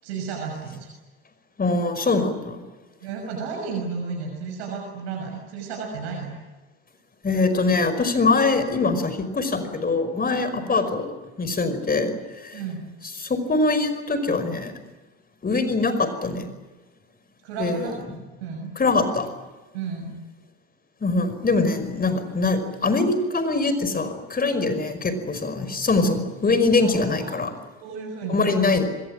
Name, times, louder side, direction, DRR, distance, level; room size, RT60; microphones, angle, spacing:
voice 1, 0.0-0.9 3.0-6.3 10.5-10.7 12.5-12.9 17.4-18.0 18.4-18.7 19.7-20.1 24.8-24.9 26.8-27.5 27.8-28.9, right 4 dB, 75° right, 1 dB, 6.4 m, -33 dB
voice 2, 1.6-2.6 7.2-11.1 11.4-12.6 13.2-14.7 15.4-16.5 17.6-17.9 18.8-19.3 21.0-27.5 28.3-28.9, left 3 dB, 30° left, 10 dB, 5.4 m, -23 dB
25.5 x 22.0 x 9.1 m, 1.2 s
hypercardioid pair, 70°, 32 cm